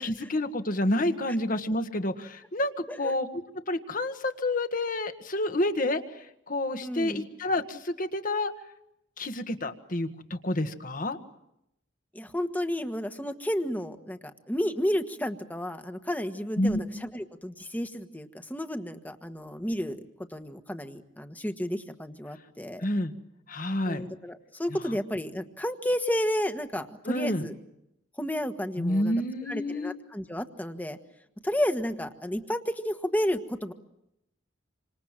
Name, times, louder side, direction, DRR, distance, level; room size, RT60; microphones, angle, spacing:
voice 1, 0.0-3.3 3.7-8.5 9.2-11.2 16.6-16.8 22.8-23.1 23.5-24.0 24.9-25.0 27.0-27.4 28.8-30.0, left 1 dB, 45° left, 8 dB, 1.7 m, -29 dB
voice 2, 6.8-7.3 12.1-14.2 14.5-20.0 20.3-22.8 23.9-27.5 28.2-29.1 29.4-31.0 31.4-33.7, equal, 10° left, 7 dB, 1.5 m, -31 dB
28.0 x 26.0 x 7.5 m, 0.83 s
head